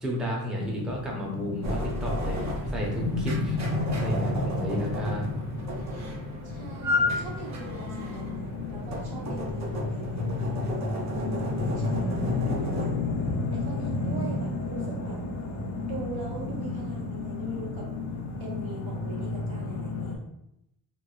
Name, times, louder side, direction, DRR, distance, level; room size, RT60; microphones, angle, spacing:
voice 1, 0.0-2.4 2.7-5.3, equal, ahead, -3 dB, 0.6 m, -32 dB
sound 1, 0.5-20.2, left 3 dB, 50° left, 0.6 m, -32 dB
sound 2, 1.6-12.9, left 1 dB, 45° right, 0.6 m, -34 dB
voice 2, 6.4-13.0 13.6-15.2 15.9-17.9 18.4-20.3, right 3 dB, 75° right, -4 dB, 1.1 m, -42 dB
3.1 x 3.0 x 2.3 m, 0.82 s
cardioid pair, 115°, 38 cm